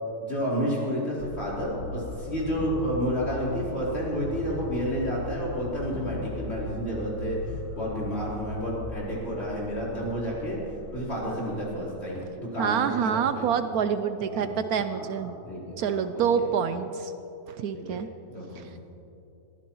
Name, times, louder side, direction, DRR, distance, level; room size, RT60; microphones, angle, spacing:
voice 1, 0.2-7.4 7.8-10.6 10.9-13.5 14.3-14.5 14.9-16.4 17.7-18.0 18.3-18.8, equal, 40° left, -7 dB, 4.1 m, -31 dB
sound 1, 1.2-12.1, left 2 dB, 85° left, 1.6 m, -38 dB
voice 2, 12.6-15.3 15.8-17.1 17.5-18.1 18.6-18.8, right 7 dB, 70° right, 10 dB, 1.0 m, -27 dB
22.5 x 14.5 x 3.1 m, 2.9 s
omnidirectional pair, 1.7 m